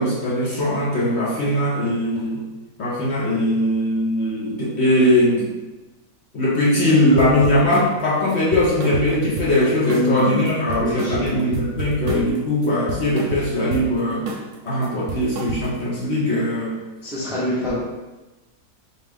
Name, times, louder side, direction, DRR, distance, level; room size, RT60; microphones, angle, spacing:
voice 1, 0.0-2.4 2.8-5.5 6.3-14.3 14.6-16.8, left 1 dB, 50° left, -7 dB, 0.9 m, -20 dB
sound 1, 7.2-7.9 8.3-9.6 9.9-10.2 10.5-12.4 12.6-13.9 14.3-14.5 14.8-15.9, right 2 dB, 70° right, 1.1 m, -30 dB
voice 2, 9.8-11.5 17.0-17.8, left 1 dB, ahead, -7 dB, 0.5 m, -26 dB
4.6 x 2.4 x 3.4 m, 1.1 s
omnidirectional pair, 1.7 m